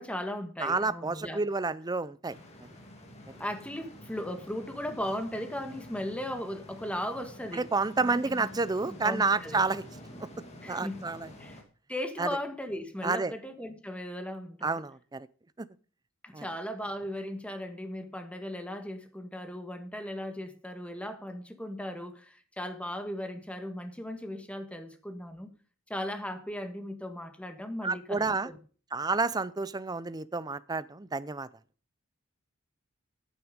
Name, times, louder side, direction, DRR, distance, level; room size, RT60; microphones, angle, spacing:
voice 1, 0.0-1.4 3.4-7.6 8.1-8.2 8.9-9.6 10.6-11.0 11.4-11.6 11.9-14.8 16.2-25.5 25.9-28.6, left 1 dB, 5° left, 1.4 m, -37 dB
voice 2, 0.6-2.4 3.3-3.4 7.5-9.8 10.7-11.3 12.2-12.4 13.0-13.3 14.6-15.3 15.6-15.7 16.3-16.5 27.8-28.5 28.9-31.5, right 3 dB, 20° right, 0.5 m, -30 dB
sound 1, 2.3-11.6, left 1 dB, 30° left, 2.2 m, -48 dB
11.0 x 9.5 x 5.1 m
head